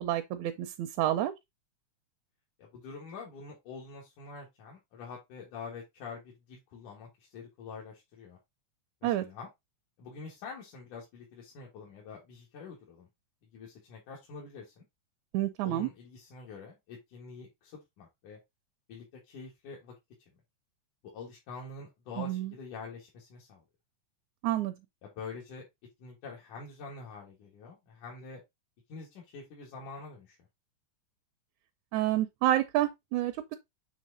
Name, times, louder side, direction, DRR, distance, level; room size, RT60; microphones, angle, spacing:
voice 1, 0.0-1.3 9.0-9.2 15.3-15.9 22.2-22.5 24.4-24.7 31.9-33.6, right 13 dB, 80° right, 1.9 m, -29 dB
voice 2, 2.6-8.4 9.0-9.5 10.0-13.1 13.5-14.8 15.6-18.4 18.9-19.9 21.0-23.6 25.0-25.7 26.0-28.4 28.9-30.4, left 4 dB, 85° left, 3.2 m, -46 dB
7.5 x 3.5 x 3.8 m
omnidirectional pair, 3.5 m